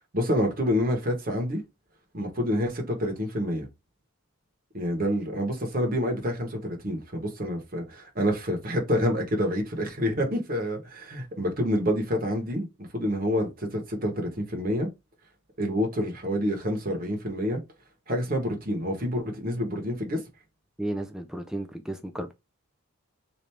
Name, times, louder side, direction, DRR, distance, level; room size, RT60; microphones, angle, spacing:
voice 1, 0.1-1.6 2.1-3.7 4.7-14.9 15.6-17.6 18.1-20.2, equal, 40° right, 1.0 m, -28 dB
voice 2, 20.8-22.3, right 1 dB, ahead, 0.4 m, -33 dB
3.3 x 2.6 x 4.2 m
head